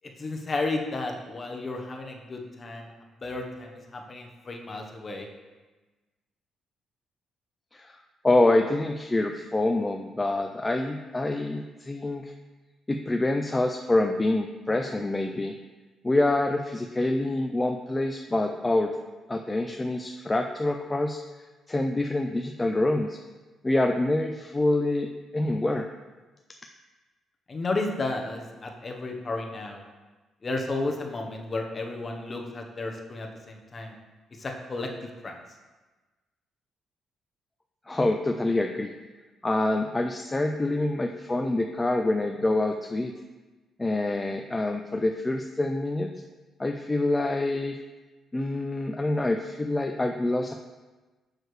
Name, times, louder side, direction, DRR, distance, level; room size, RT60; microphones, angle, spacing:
voice 1, 0.2-2.9 3.2-5.3 27.5-29.8 30.4-33.9 34.4-34.9 35.2-35.3, left 2 dB, 35° left, 2 dB, 1.0 m, -33 dB
voice 2, 8.2-12.3 12.9-15.5 16.0-18.9 19.3-21.2 21.7-23.2 23.6-25.1 25.3-25.9 37.9-38.9 39.4-43.1 43.8-46.1 46.6-47.8 48.3-50.5, left 2 dB, 20° left, 4 dB, 0.4 m, -26 dB
6.5 x 6.4 x 3.2 m, 1.2 s
cardioid pair, 90°, 0 cm